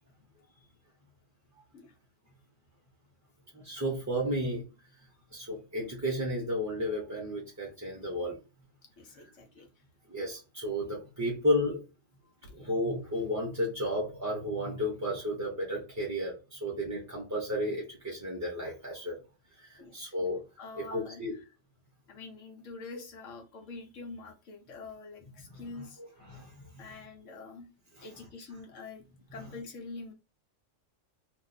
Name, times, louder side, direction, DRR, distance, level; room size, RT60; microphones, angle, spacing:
voice 1, 3.6-4.6 5.3-8.4 10.1-11.8 12.5-19.2 19.6-20.4 20.8-21.3 25.5-26.6 28.0-28.1, equal, 15° right, -2 dB, 0.7 m, -33 dB
voice 2, 9.0-9.7 12.4-12.7 19.8-20.1 20.6-21.4 22.1-26.0 26.8-27.7 28.0-29.0 29.3-30.1, left 3 dB, 75° left, 4 dB, 1.2 m, -46 dB
2.6 x 2.5 x 4.0 m, 0.30 s
omnidirectional pair, 1.3 m